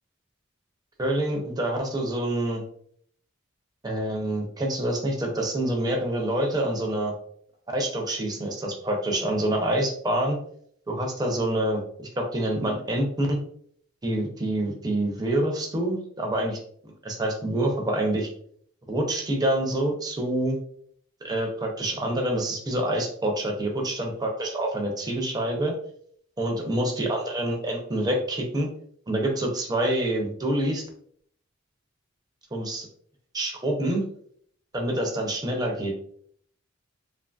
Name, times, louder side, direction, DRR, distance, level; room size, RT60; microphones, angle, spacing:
voice 1, 1.0-2.6 3.8-7.1 7.7-10.4 10.9-11.8 12.2-13.4 14.0-16.6 17.0-18.3 18.9-20.6 21.2-25.7 26.4-28.7 29.1-30.8 32.5-32.9 33.3-34.0 34.7-35.9, right 1 dB, 20° right, 1 dB, 0.5 m, -26 dB
2.7 x 2.5 x 2.2 m, 0.64 s
head